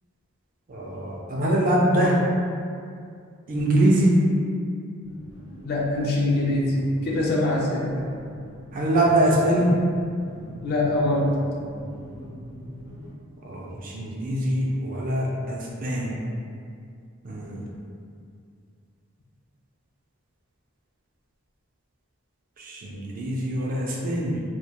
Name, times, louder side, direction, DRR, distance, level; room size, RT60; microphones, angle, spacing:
voice 1, 0.7-2.2 3.5-4.2 8.7-9.8 13.4-16.2 17.2-17.7 22.6-24.4, right 1 dB, 40° right, -3 dB, 0.3 m, -23 dB
sound 1, 5.0-13.1, equal, 70° left, 0.7 m, -42 dB
voice 2, 5.6-6.8 7.0-7.9 10.6-11.3, left 2 dB, 45° left, -3 dB, 0.4 m, -23 dB
2.1 x 2.1 x 2.8 m, 2.3 s
head